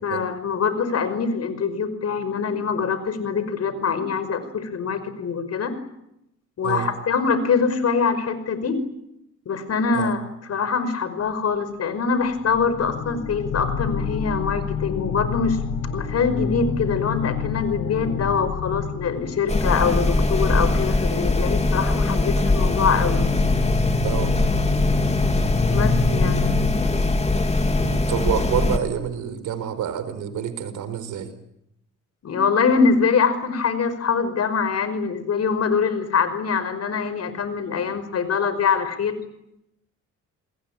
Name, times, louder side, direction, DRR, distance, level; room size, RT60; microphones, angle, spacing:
voice 1, 0.0-5.8 6.6-8.8 9.5-10.2 10.5-15.6 15.9-23.2 25.7-26.5 32.2-39.2, left 5 dB, 55° left, 12 dB, 5.5 m, -24 dB
sound 1, 11.3-11.4 12.2-21.2 21.9-26.7, left 5 dB, 75° left, 5.8 m, -29 dB
sound 2, 19.5-28.8, left 2 dB, 20° left, 3.2 m, -21 dB
voice 2, 24.0-24.3 27.8-31.3, right 9 dB, 80° right, 12 dB, 4.5 m, -27 dB
29.5 x 21.5 x 9.0 m, 0.82 s
cardioid pair, 90°, 30 cm